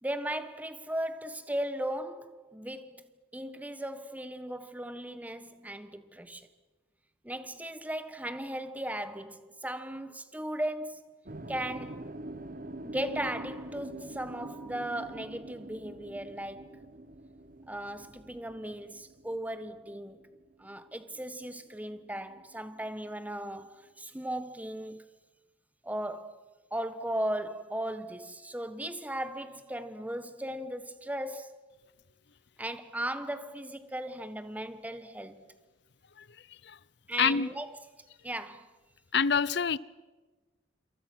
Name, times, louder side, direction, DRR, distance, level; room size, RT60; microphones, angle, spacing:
voice 1, 0.0-6.5 7.2-11.1 11.5-12.1 12.8-16.8 17.7-20.3 20.6-25.0 25.8-26.4 26.7-31.6 32.6-35.5 37.1-37.8 38.2-38.7, right 1 dB, 10° right, 1.3 m, -37 dB
sound 1, 11.3-21.4 21.6-23.3, right 1 dB, 45° right, 1.3 m, -45 dB
voice 2, 37.2-37.5 39.1-39.8, left 6 dB, 65° left, 0.7 m, -26 dB
28.0 x 27.5 x 6.2 m
head